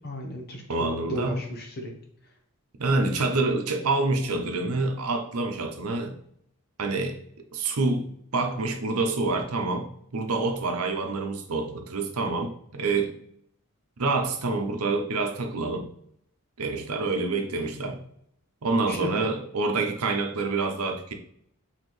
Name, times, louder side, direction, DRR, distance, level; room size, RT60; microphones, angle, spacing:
voice 1, 0.0-1.9 18.9-19.2, equal, 45° left, 1 dB, 1.0 m, -34 dB
voice 2, 0.7-1.4 2.8-6.2 6.8-7.2 7.5-13.1 14.0-15.9 16.6-18.0 18.6-21.1, right 3 dB, 80° right, 5 dB, 0.8 m, -27 dB
4.4 x 3.7 x 3.2 m, 0.68 s
head